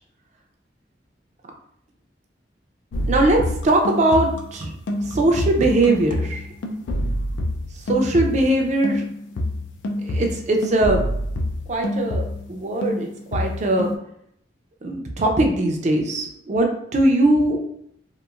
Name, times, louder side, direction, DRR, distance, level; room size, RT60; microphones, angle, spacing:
sound 1, 2.9-8.6 8.8-12.6 12.8-13.9, left 1 dB, 85° left, 0.4 m, -27 dB
voice 1, 3.1-4.7 5.1-6.4 7.9-9.0 10.0-11.0 11.7-13.9 14.8-17.6, right 1 dB, 40° right, 2 dB, 0.4 m, -20 dB
2.9 x 2.4 x 2.3 m, 0.71 s
head